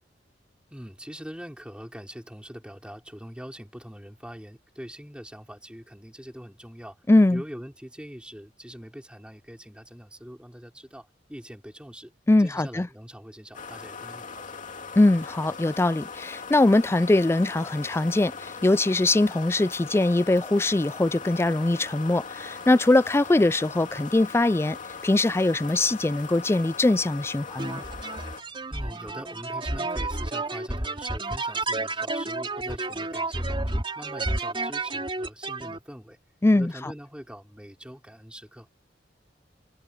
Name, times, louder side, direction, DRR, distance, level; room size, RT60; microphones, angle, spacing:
voice 1, 0.7-7.0 7.3-12.1 12.4-14.6 28.7-36.2 36.5-38.7, equal, 5° right, 5.4 m, -43 dB
voice 2, 7.1-7.4 12.3-12.9 15.0-24.8 25.0-27.8 36.4-36.9, left 2 dB, 15° left, 0.4 m, -22 dB
sound 1, 13.5-28.4, left 5 dB, 45° left, 2.4 m, -40 dB
sound 2, 27.6-35.8, right 2 dB, 30° right, 4.1 m, -31 dB
head